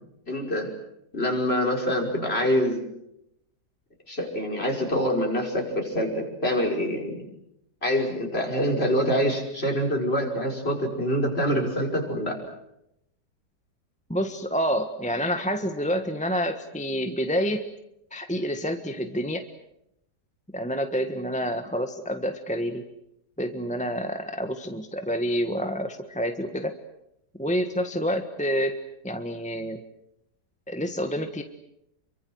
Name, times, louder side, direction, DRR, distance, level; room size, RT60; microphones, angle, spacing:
voice 1, 0.3-0.7 1.1-2.8 4.1-7.1 7.8-12.4, equal, 35° left, 1 dB, 5.7 m, -25 dB
voice 2, 14.1-17.7 18.1-19.4 20.5-22.8 23.4-26.8 27.4-28.8 29.0-29.8 30.7-31.4, equal, 5° left, 6 dB, 1.2 m, -28 dB
29.0 x 24.0 x 7.9 m, 0.81 s
omnidirectional pair, 1.8 m